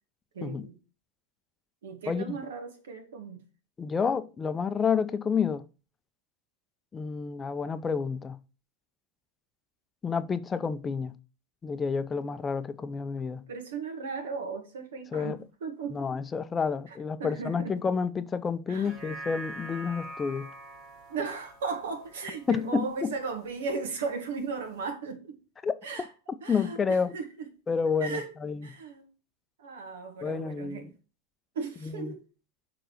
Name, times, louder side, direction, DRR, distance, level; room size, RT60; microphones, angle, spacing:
voice 1, 0.3-0.8 1.8-3.4 13.5-16.0 16.9-17.8 18.7-19.0 21.1-25.4 25.8-26.1 26.4-27.5 28.0-28.3 28.6-29.1 29.6-30.9 31.5-32.2, right 4 dB, 75° right, 1.8 m, -36 dB
voice 2, 3.8-5.6 6.9-8.4 10.0-11.1 11.6-13.4 15.1-15.4 15.9-20.5 22.5-23.1 25.6-25.7 26.5-27.1 27.7-28.7 30.2-30.9 31.8-32.1, left 5 dB, 20° left, 0.5 m, -29 dB
sound 1, 18.7-23.3 23.7-23.8, right 1 dB, 50° right, 4.3 m, -44 dB
6.6 x 3.8 x 6.3 m
hypercardioid pair, 95°, 0 cm